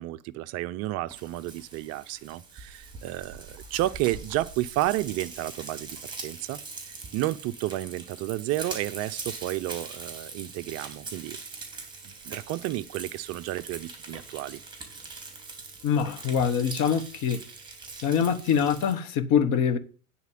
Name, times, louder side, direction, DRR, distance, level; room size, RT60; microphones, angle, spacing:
voice 1, 0.0-6.6 6.9-11.4 12.0-14.6, right 16 dB, 35° right, 0.5 m, -31 dB
Frying (food), 1.1-18.9, right 4 dB, 10° right, 3.1 m, -42 dB
voice 2, 15.8-17.4 18.0-19.8, left 7 dB, 45° left, 1.2 m, -24 dB
9.5 x 4.3 x 7.3 m
hypercardioid pair, 95°, 42 cm